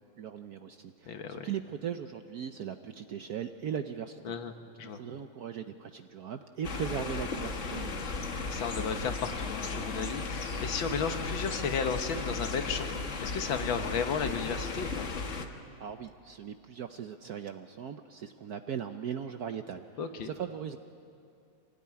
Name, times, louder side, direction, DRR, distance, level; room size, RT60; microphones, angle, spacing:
voice 1, 0.2-4.4 4.8-8.2 15.8-20.8, right 8 dB, 65° right, 8 dB, 1.0 m, -39 dB
voice 2, 1.1-1.5 4.3-4.5 4.8-5.0 8.4-12.9 13.2-15.1 20.0-20.3, left 6 dB, 70° left, 7 dB, 2.0 m, -34 dB
sound 1, 6.6-15.5, left 4 dB, 40° left, 1.4 m, -35 dB
24.5 x 18.0 x 9.6 m, 2.6 s
omnidirectional pair, 2.3 m